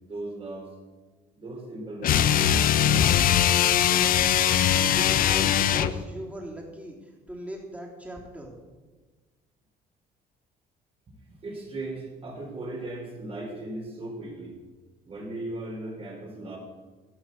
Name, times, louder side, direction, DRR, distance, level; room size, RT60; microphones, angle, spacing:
voice 1, 0.0-0.7 1.4-2.4 11.1-11.2 11.4-14.6 15.0-16.6, right 2 dB, 35° right, -1 dB, 3.9 m, -37 dB
sound 1, 2.0-6.0, left 10 dB, 55° left, 0.7 m, -21 dB
voice 2, 4.7-8.5, right 1 dB, 10° right, -1 dB, 3.5 m, -39 dB
15.5 x 6.0 x 8.0 m, 1.3 s
cardioid pair, 110°, 17 cm